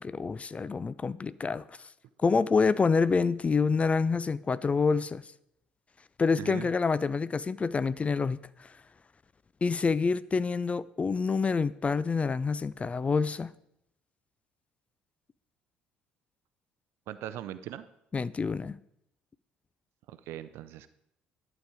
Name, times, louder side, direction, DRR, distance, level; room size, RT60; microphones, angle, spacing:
voice 1, 0.0-1.6 2.2-5.2 6.2-8.4 9.6-13.5 18.1-18.8, left 4 dB, 25° left, 0.4 m, -27 dB
voice 2, 6.4-6.7 17.1-17.9 20.1-20.9, right 12 dB, 60° right, 0.5 m, -40 dB
11.5 x 7.0 x 4.8 m
figure-of-eight pair, 50°, 5 cm